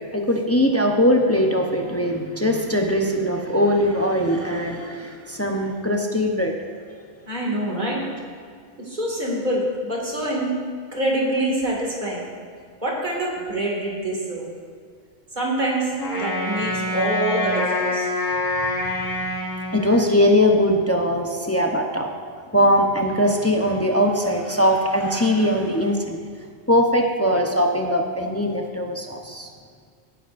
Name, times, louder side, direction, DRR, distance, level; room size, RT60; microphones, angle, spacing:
voice 1, 0.1-6.5 18.8-19.1 19.7-22.1 22.5-26.2 26.7-29.5, equal, 15° left, 1 dB, 0.6 m, -21 dB
voice 2, 7.3-8.0 8.9-10.5 10.9-12.2 12.8-14.5 15.4-15.8 16.2-18.1, right 1 dB, 35° right, -3 dB, 2.3 m, -25 dB
Wind instrument woodwind instrument, 16.0-20.4, left 1 dB, 90° left, 2.2 m, -26 dB
17.5 x 10.0 x 2.6 m, 2.1 s
omnidirectional pair, 1.3 m